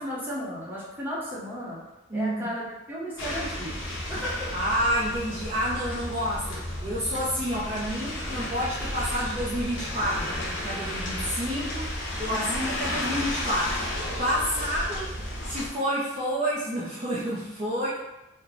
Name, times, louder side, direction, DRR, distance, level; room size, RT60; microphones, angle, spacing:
voice 1, 0.0-1.8 2.1-4.5 12.3-13.2, equal, 10° right, -7 dB, 0.8 m, -35 dB
voice 2, 2.1-2.5 4.5-15.1 15.5-18.0, equal, 30° right, -8 dB, 0.5 m, -29 dB
sound 1, 3.2-15.7, left 1 dB, 65° left, 0.8 m, -33 dB
3.1 x 2.1 x 3.8 m, 0.98 s
head